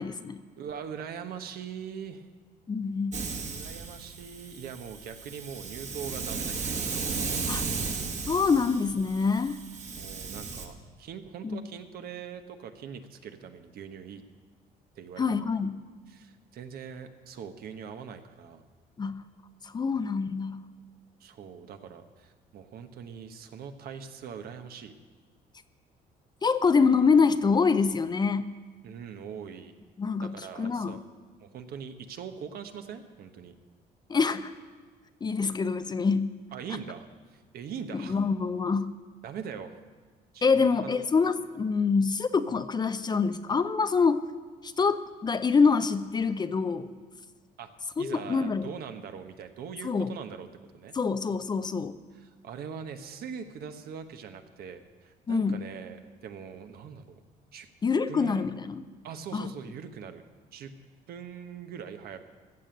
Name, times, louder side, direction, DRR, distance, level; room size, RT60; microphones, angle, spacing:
voice 1, 0.0-0.4 2.7-3.2 7.5-7.6 8.3-9.6 11.4-11.6 15.2-15.7 19.0-19.2 19.6-20.6 26.4-28.5 30.0-31.0 34.1-34.5 35.2-36.4 37.9-38.9 40.4-44.2 44.6-46.9 48.0-48.7 49.8-50.1 50.9-52.0 55.3-55.6 57.8-58.8 59.3-59.5, left 5 dB, 25° left, 11 dB, 0.6 m, -26 dB
voice 2, 0.6-2.3 3.5-7.4 10.0-14.2 14.9-15.4 16.1-18.6 21.2-24.9 28.8-29.7 30.2-31.0 31.4-33.5 36.5-38.2 39.2-39.8 40.3-41.0 47.6-47.7 48.0-50.5 50.7-50.9 52.1-57.2 57.5-57.7 58.1-58.5 59.0-60.2 60.5-60.7 61.1-62.2, right 7 dB, 65° right, 7 dB, 1.1 m, -42 dB
Hiss, 3.1-10.7, right 4 dB, 45° right, 1.7 m, -35 dB
15.0 x 7.0 x 7.7 m, 1.5 s
cardioid pair, 110°, 17 cm